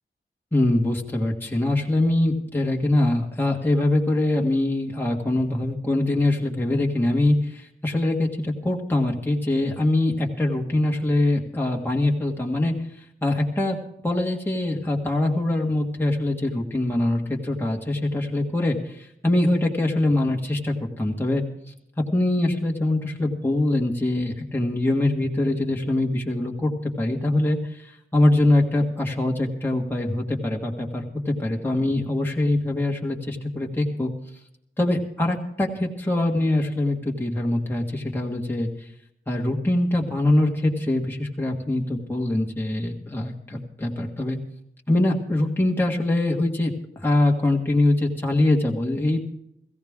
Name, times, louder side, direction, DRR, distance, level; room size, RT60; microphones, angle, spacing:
voice 1, 0.5-13.8 14.0-21.4 22.1-34.1 34.8-38.9 39.3-44.4 44.9-49.2, left 1 dB, 10° left, -1 dB, 1.6 m, -23 dB
16.5 x 15.5 x 3.6 m, 0.77 s
wide cardioid pair, 115°, 20 cm